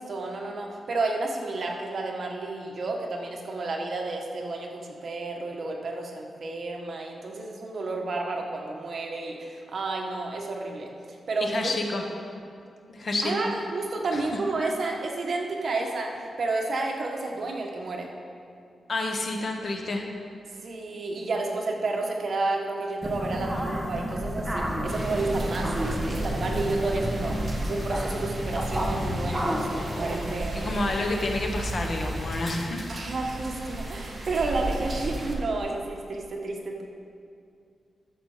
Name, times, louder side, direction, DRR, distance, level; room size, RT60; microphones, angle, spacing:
voice 1, 0.0-11.5 13.2-18.1 20.6-27.4 27.7-30.7 32.9-36.8, right 3 dB, 50° right, 0 dB, 1.3 m, -31 dB
voice 2, 11.4-12.0 12.9-13.5 14.1-14.2 14.6-14.7 18.9-20.1 30.5-32.9, left 2 dB, 50° left, 2 dB, 1.2 m, -29 dB
sound 1, 23.0-32.4, equal, 5° right, 1.0 m, -33 dB
sound 2, 24.9-35.3, right 1 dB, 30° right, 1.8 m, -33 dB
12.5 x 7.2 x 5.0 m, 2.4 s
wide cardioid pair, 125°, 0 cm